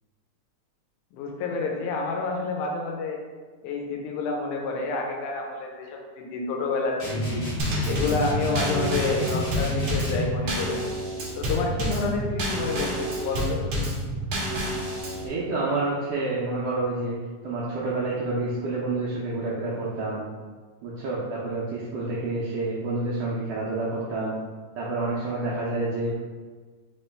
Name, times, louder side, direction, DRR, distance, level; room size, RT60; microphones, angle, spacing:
voice 1, 1.1-3.2 3.6-7.4 7.9-10.8 11.4-13.9, left 3 dB, 85° left, 1 dB, 2.1 m, -29 dB
sound 1, 7.0-10.4, left 1 dB, 65° left, 0.8 m, -29 dB
Drum kit / Snare drum / Bass drum, 7.6-15.3, equal, 65° right, 1.4 m, -29 dB
voice 2, 15.2-17.1 17.4-20.2 20.8-24.3 24.7-26.1, right 2 dB, 80° right, -7 dB, 1.4 m, -28 dB
4.7 x 3.0 x 3.3 m, 1.4 s
omnidirectional pair, 3.5 m